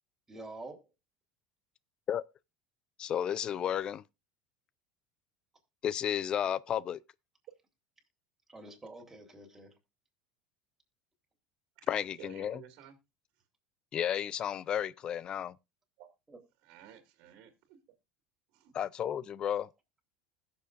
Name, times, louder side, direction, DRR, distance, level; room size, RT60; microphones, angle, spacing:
voice 1, 0.3-0.9 8.5-9.7 16.3-16.4, right 2 dB, 15° right, 3.6 m, -47 dB
voice 2, 3.0-4.0 5.8-7.0 11.9-12.6 13.9-15.6 18.7-19.7, left 9 dB, 40° left, 0.4 m, -32 dB
voice 3, 12.2-13.0 16.0-16.1 16.6-17.8 18.5-18.7, right 11 dB, 65° right, 2.2 m, -53 dB
20.5 x 6.8 x 2.5 m
hypercardioid pair, 85°, 2 cm